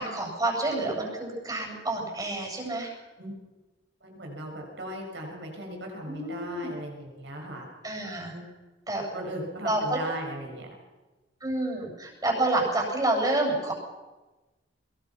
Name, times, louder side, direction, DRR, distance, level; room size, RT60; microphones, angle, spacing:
voice 1, 0.0-2.9 6.0-6.7 7.8-8.3 8.9-9.1 9.6-10.0 11.4-13.7, right 2 dB, 20° right, 0 dB, 7.9 m, -28 dB
voice 2, 4.0-7.7 8.3-8.5 9.1-10.7, right 1 dB, 70° right, 1 dB, 7.0 m, -37 dB
24.0 x 22.5 x 6.0 m, 1.1 s
head